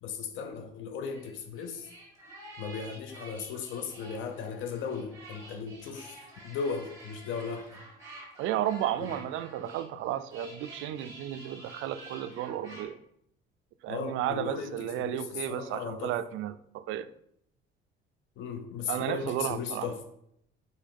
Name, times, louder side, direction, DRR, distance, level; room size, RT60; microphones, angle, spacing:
voice 1, 0.0-1.9 2.6-6.1 6.4-7.8 9.0-9.1 13.9-16.2 18.4-20.0, left 6 dB, 70° left, 0.8 m, -36 dB
sound 1, 1.0-12.8, right 1 dB, 15° right, 2.4 m, -49 dB
voice 2, 8.4-13.0 13.8-17.1 18.9-19.9, right 11 dB, 75° right, 0.5 m, -33 dB
5.5 x 4.9 x 5.3 m
cardioid pair, 160°, 20 cm